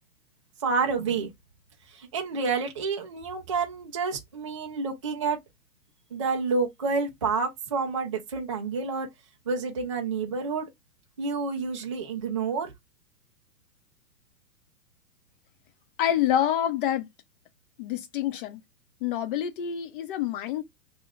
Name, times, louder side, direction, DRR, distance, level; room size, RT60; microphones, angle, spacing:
voice 1, 0.6-1.3 1.9-5.4 6.1-9.1 9.5-10.7 11.2-12.7, right 4 dB, 25° right, 0.3 m, -29 dB
voice 2, 16.0-17.1 17.8-18.6 19.0-20.6, left 11 dB, 35° left, 0.6 m, -27 dB
2.8 x 2.2 x 3.6 m
hypercardioid pair, 125°, 48 cm